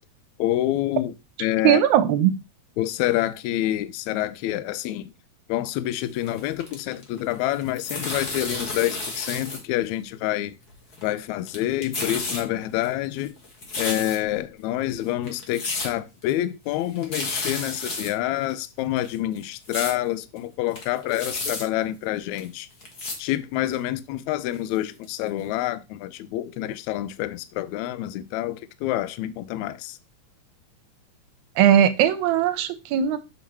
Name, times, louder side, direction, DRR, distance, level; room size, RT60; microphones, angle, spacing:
voice 1, 0.4-1.1 1.4-1.8 2.8-5.1 5.5-10.5 11.0-13.3 13.8-22.7 23.2-30.0, left 14 dB, 80° left, 1.8 m, -27 dB
voice 2, 1.6-2.3 31.6-33.2, right 10 dB, 75° right, 1.9 m, -19 dB
sound 1, 6.1-7.2 7.5-9.6 9.9-10.0 10.7-11.2 11.5-12.4 12.8-14.4 14.9-15.0 15.3-15.9 16.2-16.3 16.7-16.8 17.0-18.1 18.5-18.6 19.0-19.9 20.4-20.5 20.7-21.6 22.4-22.5 22.8-23.2 23.7-23.8 24.5-24.6 25.0-25.1 25.4-25.5, left 2 dB, 40° left, 1.5 m, -32 dB
6.9 x 6.3 x 2.9 m
omnidirectional pair, 3.6 m